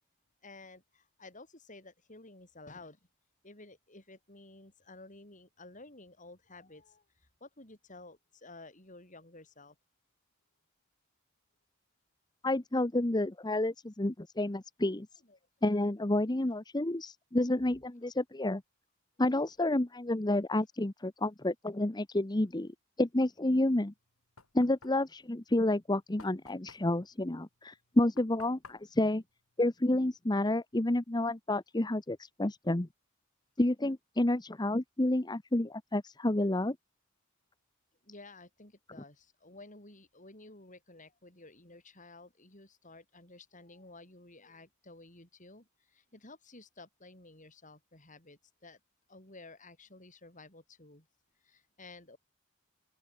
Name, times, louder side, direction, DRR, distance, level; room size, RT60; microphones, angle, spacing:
voice 1, 0.4-3.0 3.4-7.0 7.4-9.8 15.2-15.4 17.6-17.7 38.0-48.8 49.1-51.1 51.4-52.2, left 2 dB, 35° left, 6.7 m, -53 dB
voice 2, 12.4-15.1 15.6-18.6 19.2-22.7 23.0-23.9 24.5-29.2 29.6-32.9 33.6-36.8, left 1 dB, 20° left, 0.9 m, -30 dB
Knock, 23.8-30.3, left 4 dB, 85° left, 6.8 m, -58 dB
open air
head